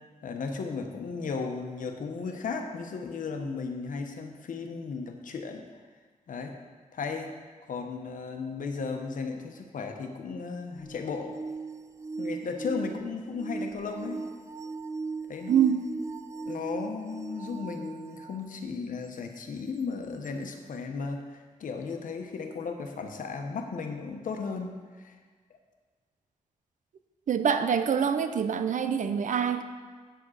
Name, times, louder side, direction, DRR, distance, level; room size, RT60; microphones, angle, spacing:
voice 1, 0.2-5.6 6.3-6.5 6.9-7.3 7.7-11.4 12.2-14.2 15.3-15.6 16.5-25.1, left 4 dB, 75° left, 4 dB, 1.1 m, -35 dB
sound 1, 10.8-18.4 19.1-19.2 20.2-20.3, right 4 dB, 20° right, 0.3 m, -38 dB
voice 2, 15.5-15.9 27.3-29.6, right 7 dB, 65° right, 9 dB, 0.7 m, -25 dB
9.1 x 7.5 x 6.5 m, 1.5 s
wide cardioid pair, 170°, 14 cm